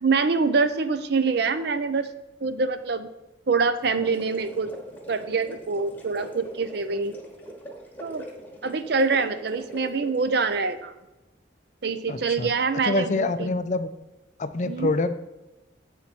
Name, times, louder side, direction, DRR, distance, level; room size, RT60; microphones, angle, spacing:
voice 1, 0.0-2.1 2.4-3.1 3.5-4.7 5.1-7.2 8.0-8.2 8.6-10.9 11.8-13.5 14.6-14.9, right 4 dB, 55° right, 11 dB, 0.5 m, -25 dB
sound 1, 3.8-10.6, right 1 dB, 10° left, 1.3 m, -43 dB
voice 2, 12.1-12.5 12.8-13.9 14.4-15.2, left 2 dB, 35° left, 11 dB, 0.4 m, -26 dB
8.2 x 4.2 x 6.0 m, 1.0 s
head